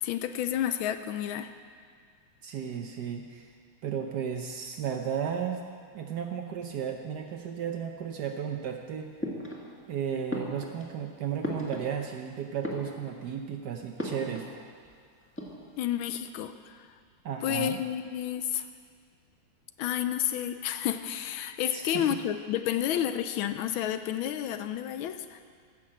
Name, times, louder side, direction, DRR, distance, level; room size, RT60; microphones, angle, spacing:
voice 1, 0.0-1.5 15.8-16.8 17.4-18.6 19.8-25.4, left 11 dB, 80° left, 10 dB, 1.4 m, -30 dB
voice 2, 2.4-3.5 3.8-5.6 5.9-9.1 9.9-14.5 17.2-17.8 21.7-22.2, right 8 dB, 65° right, 4 dB, 1.1 m, -34 dB
sound 1, 9.2-9.9 10.3-12.2 12.5-13.4 14.0-14.6 14.8-14.9 15.2-15.9, equal, 5° left, 1.5 m, -37 dB
14.5 x 6.1 x 7.4 m, 2.1 s
omnidirectional pair, 2.3 m